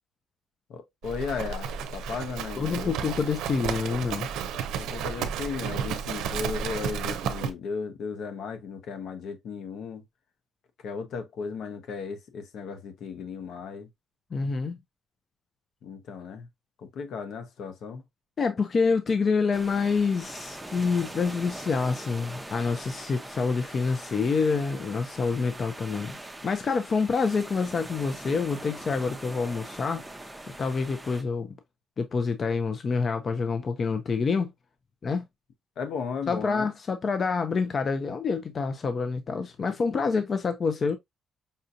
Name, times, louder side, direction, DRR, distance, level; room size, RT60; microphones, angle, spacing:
voice 1, 0.7-3.0 4.5-10.0 10.8-13.9 15.8-16.5 16.8-18.0 35.8-36.7, left 5 dB, 75° left, 0.9 m, -35 dB
Livestock farm animals working animals, 1.0-7.5, right 7 dB, 90° right, 0.5 m, -32 dB
voice 2, 2.6-4.3 14.3-14.8 18.4-26.2 26.4-30.0 30.6-31.5 32.0-34.5 35.0-35.2 36.3-41.0, left 5 dB, 45° left, 0.5 m, -27 dB
sound 1, 19.5-31.2, right 1 dB, 10° right, 0.7 m, -42 dB
5.3 x 2.6 x 2.5 m
cardioid pair, 90°, 0 cm